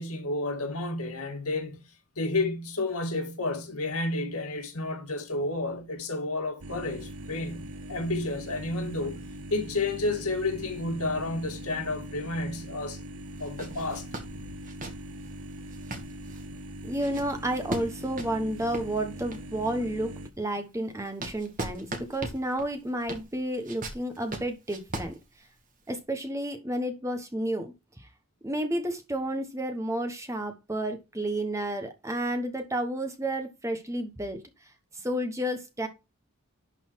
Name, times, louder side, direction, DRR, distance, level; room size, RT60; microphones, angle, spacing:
voice 1, 0.0-1.8 2.2-13.0 13.4-14.1, left 2 dB, 85° left, 2.1 m, -31 dB
sound 1, 6.6-20.3, right 1 dB, 85° right, 1.0 m, -41 dB
sound 2, 6.8-12.2 12.5-12.6 13.3-19.7 20.2-25.9, right 2 dB, 35° right, 1.7 m, -41 dB
voice 2, 16.8-25.2 25.9-28.1 28.4-34.4 34.9-35.9, right 1 dB, 15° right, 1.1 m, -31 dB
11.5 x 4.2 x 4.6 m
head